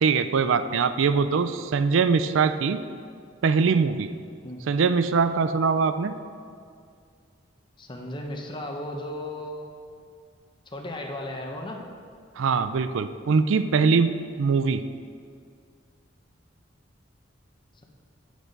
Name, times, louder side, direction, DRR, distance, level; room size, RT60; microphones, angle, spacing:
voice 1, 0.0-2.8 3.4-4.1 4.7-6.1 12.4-14.8, right 5 dB, 75° right, 12 dB, 0.4 m, -22 dB
voice 2, 7.8-9.7 10.7-11.8, left 1 dB, 25° left, 2 dB, 0.8 m, -35 dB
10.0 x 6.2 x 5.2 m, 2.2 s
head